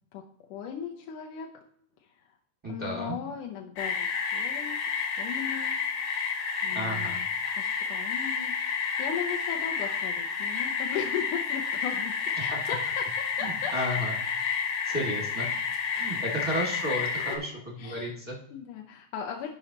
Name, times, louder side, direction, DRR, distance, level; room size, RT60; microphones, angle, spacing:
voice 1, 0.1-1.5 2.0-2.4 2.7-4.8 5.2-5.8 6.6-7.3 7.6-8.5 8.8-12.8 13.1-14.0 15.7-15.8 16.9-17.4 17.8-18.1 18.5-19.5, left 8 dB, 75° left, 1 dB, 1.8 m, -37 dB
voice 2, 2.6-3.2 6.7-7.2 12.5-12.6 13.4-14.1 14.8-15.5 15.9-18.4, equal, 45° right, -3 dB, 0.4 m, -33 dB
sound 1, 3.8-17.4, left 6 dB, 55° left, 1.8 m, -30 dB
15.0 x 5.5 x 2.9 m, 0.67 s
omnidirectional pair, 4.3 m